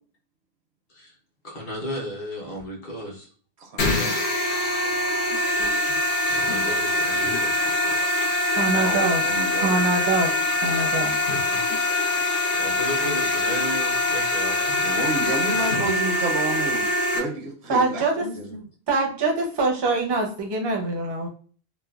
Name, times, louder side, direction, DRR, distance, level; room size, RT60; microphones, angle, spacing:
voice 1, 1.4-3.3 5.5-5.6 6.2-8.0 12.4-14.7 18.3-18.6, equal, 50° left, -2 dB, 1.0 m, -35 dB
voice 2, 3.6-4.3 8.7-9.8 11.8-11.9 14.8-18.6, right 2 dB, 80° right, 2 dB, 0.8 m, -30 dB
sound 1, 3.8-17.2, left 1 dB, 80° left, 1.0 m, -23 dB
voice 3, 8.5-9.2 9.6-10.3 10.6-11.1 17.7-18.3 18.9-21.3, right 3 dB, 35° right, 1 dB, 0.4 m, -24 dB
3.1 x 2.1 x 2.3 m, 0.42 s
omnidirectional pair, 1.1 m